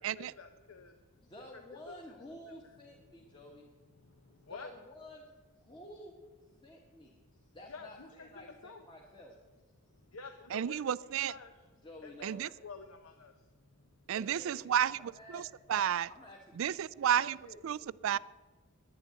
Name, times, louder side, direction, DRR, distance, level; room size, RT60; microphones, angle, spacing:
voice 1, 0.2-1.0 1.5-1.9 3.1-3.4 4.0-4.7 7.7-8.8 9.8-11.5 12.0-13.7, left 4 dB, 75° left, 6 dB, 0.9 m, -50 dB
voice 2, 1.2-3.7 4.5-5.2 5.6-6.1 6.5-9.4 11.8-12.5 14.1-15.4 15.7-16.9 17.2-17.6, left 1 dB, 20° left, -1 dB, 1.5 m, -52 dB
voice 3, 10.5-11.3 12.2-12.5 14.1-16.1 16.6-17.4 17.6-18.2, right 9 dB, 65° right, 21 dB, 0.3 m, -32 dB
10.5 x 9.9 x 9.2 m, 1.3 s
head